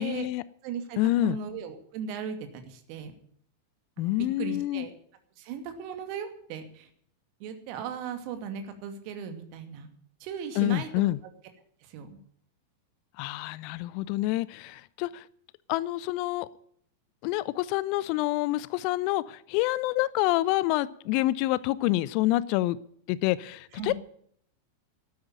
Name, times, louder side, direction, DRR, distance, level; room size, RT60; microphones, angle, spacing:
voice 1, 0.0-0.4 1.0-1.4 4.0-4.9 10.6-11.2 13.2-15.2 15.7-16.5 17.2-22.8 23.1-23.9, left 17 dB, 45° left, 20 dB, 0.5 m, -27 dB
voice 2, 0.6-3.1 4.0-4.9 5.4-6.9 7.4-9.9 10.2-10.9 11.8-12.2 23.7-23.9, right 7 dB, 45° right, 8 dB, 2.4 m, -37 dB
12.5 x 9.4 x 8.9 m, 0.64 s
figure-of-eight pair, 90°, 0 cm